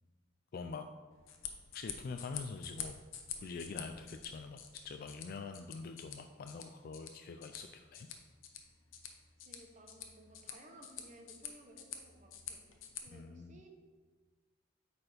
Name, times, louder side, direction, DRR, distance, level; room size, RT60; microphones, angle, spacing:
voice 1, 0.5-0.8 1.7-3.0 3.4-4.6 4.8-8.1 13.1-13.6, left 4 dB, 50° left, 6 dB, 0.3 m, -45 dB
sound 1, 1.1-13.0, left 8 dB, 90° left, 0.8 m, -48 dB
voice 2, 9.4-13.7, right 1 dB, 40° right, 2 dB, 1.0 m, -58 dB
8.6 x 4.3 x 5.0 m, 1.4 s
head